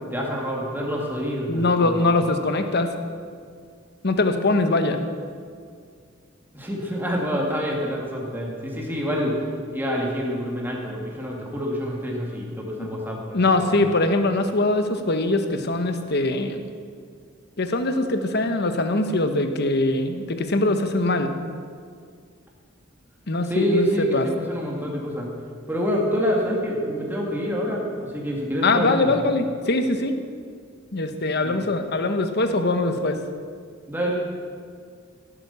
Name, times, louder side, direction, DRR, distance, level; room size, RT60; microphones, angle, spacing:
voice 1, 0.1-2.0 6.5-9.4 9.7-13.8 23.5-25.3 25.7-29.1 31.4-31.6 33.9-34.1, equal, 10° right, -2 dB, 2.1 m, -27 dB
voice 2, 1.5-2.9 4.0-5.0 12.8-12.9 13.3-16.6 17.6-21.3 23.3-24.3 28.6-30.1 30.9-33.2, left 2 dB, 55° left, 7 dB, 1.2 m, -22 dB
16.0 x 9.1 x 6.9 m, 2.1 s
head